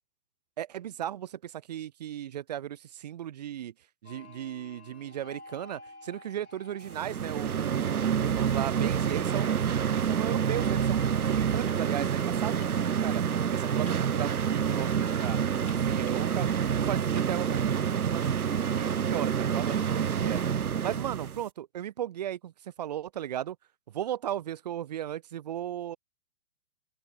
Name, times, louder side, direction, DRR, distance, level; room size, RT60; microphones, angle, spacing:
voice 1, 0.6-3.7 4.0-13.2 13.5-15.4 15.9-16.5 16.7-20.4 20.8-23.6 23.9-26.0, right 11 dB, 30° right, 0.5 m, -36 dB
sound 1, 4.0-20.1, left 3 dB, 75° left, 3.9 m, -53 dB
sound 2, 6.9-21.4, right 8 dB, 85° right, 0.6 m, -28 dB
sound 3, 10.8-17.7, left 13 dB, 45° left, 5.6 m, -57 dB
figure-of-eight pair, 115°, 44 cm